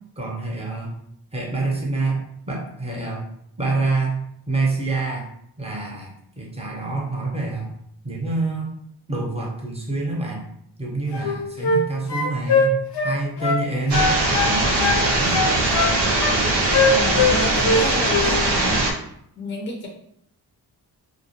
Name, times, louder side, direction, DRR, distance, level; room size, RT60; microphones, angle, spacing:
voice 1, 0.2-0.9 1.3-3.3 3.6-4.2 4.5-5.3 5.6-7.7 8.0-8.7 9.1-10.4 10.8-15.4, right 3 dB, 15° right, -2 dB, 0.7 m, -27 dB
sound 1, 11.1-11.8 12.1-13.6 13.9-15.0 15.3-16.4 16.7-17.8 18.1-18.4, left 3 dB, 75° left, 0.6 m, -21 dB
sound 2, 13.9-18.9, right 2 dB, 85° right, 0.6 m, -21 dB
voice 2, 16.9-18.8 19.4-19.9, left 1 dB, 30° left, 1 dB, 0.5 m, -29 dB
2.3 x 2.0 x 2.8 m, 0.70 s
cardioid pair, 75°, 40 cm